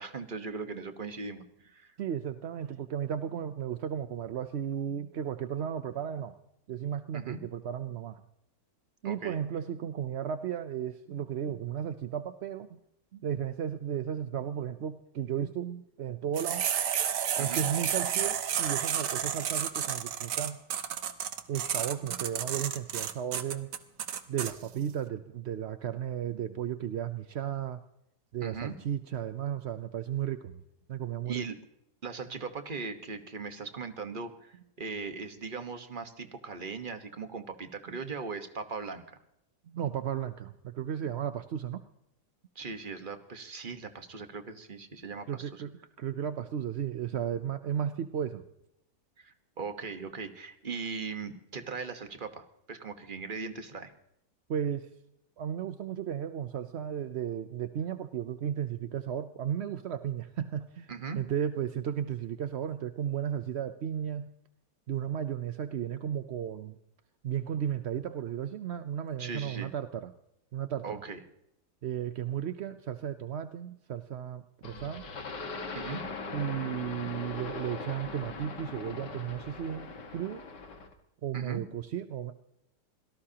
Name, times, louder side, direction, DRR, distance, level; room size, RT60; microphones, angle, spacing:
voice 1, 0.0-1.9 7.1-7.4 9.0-9.4 17.4-17.6 28.4-28.7 31.2-31.6 32.0-39.0 42.5-45.7 49.2-53.9 60.9-61.2 69.2-69.7 70.8-71.2 75.7-76.0 81.3-81.6, right 4 dB, 30° right, 8 dB, 1.3 m, -39 dB
voice 2, 2.0-6.3 6.7-8.2 9.0-12.8 13.1-16.7 17.4-20.6 21.5-23.7 24.3-27.8 28.3-30.6 30.9-31.4 37.9-38.0 39.7-41.8 45.3-45.7 46.0-48.4 54.5-54.9 55.4-60.9 61.2-64.3 64.9-66.8 67.2-70.1 70.5-71.0 71.8-75.1 76.3-80.4 81.2-82.4, right 9 dB, 60° right, 10 dB, 0.7 m, -34 dB
sound 1, 16.4-24.5, right 9 dB, 85° right, 1.6 m, -31 dB
sound 2, 74.6-80.9, left 4 dB, 85° left, 2.3 m, -40 dB
26.0 x 18.0 x 2.9 m, 0.79 s
omnidirectional pair, 1.8 m